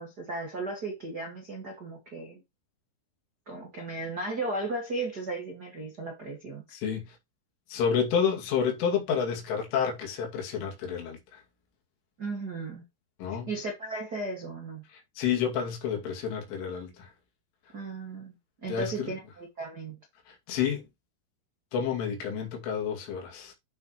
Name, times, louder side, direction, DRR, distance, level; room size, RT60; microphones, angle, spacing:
voice 1, 0.0-2.4 3.4-6.6 12.2-12.8 13.5-14.8 17.7-18.4 18.6-20.0, right 2 dB, 85° right, 0.8 m, -35 dB
voice 2, 6.7-7.2 7.7-11.4 13.2-13.5 14.9-17.1 18.7-19.1 20.3-20.9 21.7-23.5, left 7 dB, 80° left, 5.0 m, -30 dB
11.5 x 6.1 x 3.1 m
omnidirectional pair, 5.6 m